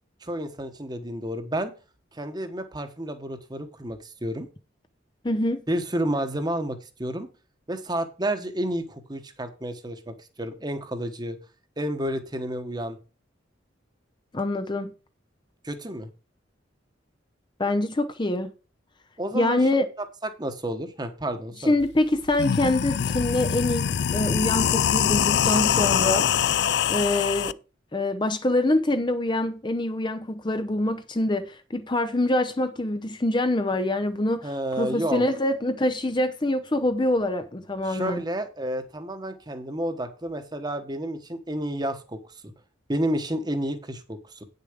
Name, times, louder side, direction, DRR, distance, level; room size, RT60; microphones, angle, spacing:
voice 1, 0.2-1.7 2.1-4.5 5.7-7.3 7.7-11.4 11.8-13.0 15.6-16.1 19.2-19.7 20.4-21.7 34.4-35.2 37.8-42.5 42.9-44.4, right 1 dB, 20° right, 1.2 m, -30 dB
voice 2, 5.2-5.6 14.3-14.9 17.6-18.5 19.3-19.9 21.6-26.3 26.9-27.5 27.9-38.2, left 1 dB, 25° left, 0.7 m, -25 dB
sound 1, 21.8-21.9 22.3-27.5, left 8 dB, 60° left, 0.4 m, -23 dB
9.2 x 6.7 x 5.1 m
head